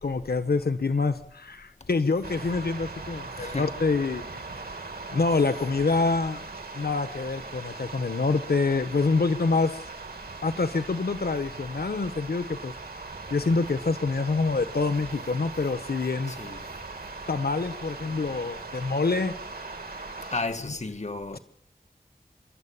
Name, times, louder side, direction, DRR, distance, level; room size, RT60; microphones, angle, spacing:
voice 1, 0.0-4.4 5.1-6.4 6.7-9.8 10.4-12.7 13.3-16.3 17.3-19.3 21.3-21.4, left 3 dB, 80° left, 1.1 m, -26 dB
sound 1, 2.2-20.4, right 3 dB, 80° right, 2.3 m, -40 dB
voice 2, 3.4-3.8 16.3-16.6 18.0-18.1 20.3-21.4, left 3 dB, 45° left, 1.6 m, -33 dB
30.0 x 13.0 x 8.8 m
wide cardioid pair, 65°, 16 cm